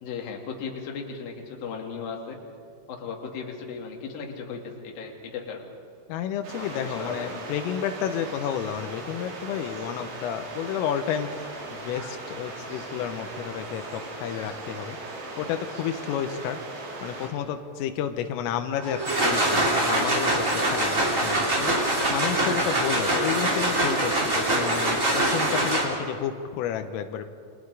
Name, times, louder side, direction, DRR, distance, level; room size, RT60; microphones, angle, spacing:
voice 1, 0.0-2.4 2.9-5.6 6.6-7.3 22.4-22.6, left 5 dB, 50° left, 1 dB, 3.7 m, -36 dB
voice 2, 6.1-11.3 11.8-15.0 15.4-16.6 17.0-27.3, left 9 dB, 90° left, 8 dB, 3.7 m, -31 dB
sound 1, 6.4-17.3, right 2 dB, 70° right, 6.4 m, -38 dB
sound 2, 18.8-26.2, right 1 dB, 20° right, 2.7 m, -24 dB
29.5 x 24.5 x 4.9 m, 2.4 s
omnidirectional pair, 5.7 m